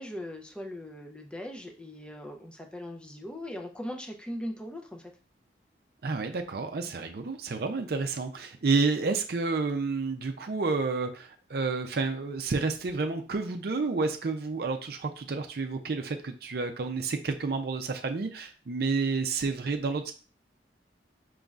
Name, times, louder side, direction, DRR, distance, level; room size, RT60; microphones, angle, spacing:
voice 1, 0.0-5.1, left 1 dB, 5° left, 3 dB, 0.5 m, -39 dB
voice 2, 6.0-20.1, right 4 dB, 60° right, 5 dB, 0.5 m, -30 dB
5.2 x 3.1 x 2.4 m, 0.37 s
head